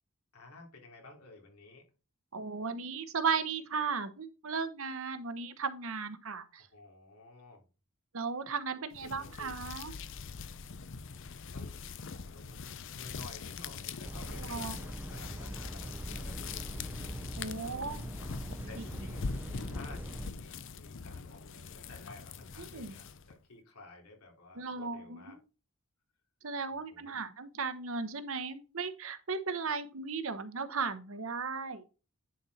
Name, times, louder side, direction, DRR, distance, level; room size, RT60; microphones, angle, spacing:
voice 1, 0.3-1.9 6.7-7.6 8.7-9.6 11.5-17.0 17.7-18.1 18.6-25.4 26.7-27.2, left 2 dB, 80° left, 0 dB, 3.2 m, -54 dB
voice 2, 2.3-6.7 8.1-9.9 14.4-14.8 17.4-18.1 22.7-22.9 24.6-25.3 26.4-31.8, right 5 dB, 65° right, 11 dB, 0.9 m, -36 dB
sound 1, 8.9-23.4, left 5 dB, 60° left, 0.6 m, -43 dB
sound 2, 14.0-20.3, equal, 10° right, 0.5 m, -42 dB
10.5 x 4.3 x 4.1 m, 0.33 s
head